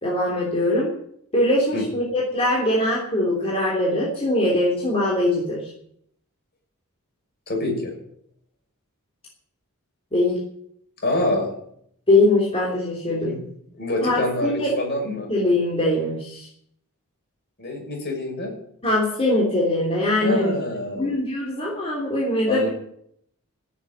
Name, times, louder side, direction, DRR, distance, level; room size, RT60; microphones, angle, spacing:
voice 1, 0.0-0.9 1.3-5.6 10.1-10.4 12.1-13.3 14.0-14.7 15.3-16.5 18.8-20.6 21.0-22.7, left 1 dB, 30° left, -4 dB, 3.3 m, -22 dB
voice 2, 7.5-7.9 11.0-11.5 13.2-13.4 13.7-15.3 17.6-18.5 20.2-21.1 22.5-22.7, left 1 dB, 50° left, 1 dB, 6.0 m, -26 dB
15.5 x 7.4 x 9.5 m, 0.70 s
head